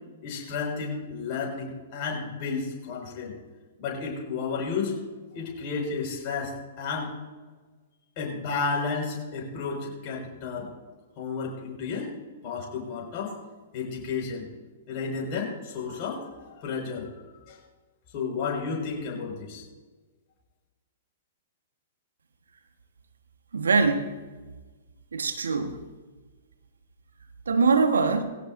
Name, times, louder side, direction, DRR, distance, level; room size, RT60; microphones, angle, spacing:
voice 1, 0.2-3.3 3.8-5.0 5.3-7.1 8.2-10.7 11.2-12.1 12.4-13.3 13.7-14.5 14.9-17.1 17.5-17.6 18.1-19.6, left 5 dB, 40° left, -1 dB, 5.5 m, -32 dB
voice 2, 23.5-24.2 25.1-25.8 27.5-28.2, right 4 dB, 75° right, 7 dB, 1.4 m, -23 dB
19.5 x 16.5 x 2.7 m, 1.3 s
figure-of-eight pair, 110°, 0 cm